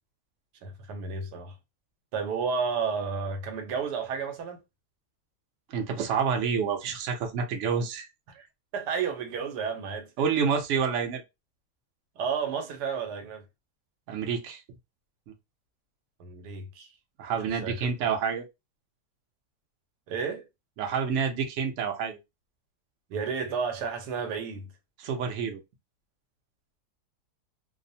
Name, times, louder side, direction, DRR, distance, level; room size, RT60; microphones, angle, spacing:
voice 1, 0.6-1.6 2.1-4.6 8.3-8.5 8.7-10.1 12.2-13.4 16.2-16.9 17.6-17.9 20.1-20.5 23.1-24.7, right 5 dB, 85° right, 1.2 m, -32 dB
voice 2, 5.7-8.1 10.2-11.2 14.1-14.6 17.2-18.4 20.8-22.2 25.0-25.6, right 6 dB, 65° right, 0.8 m, -28 dB
2.7 x 2.0 x 2.5 m
omnidirectional pair, 1.7 m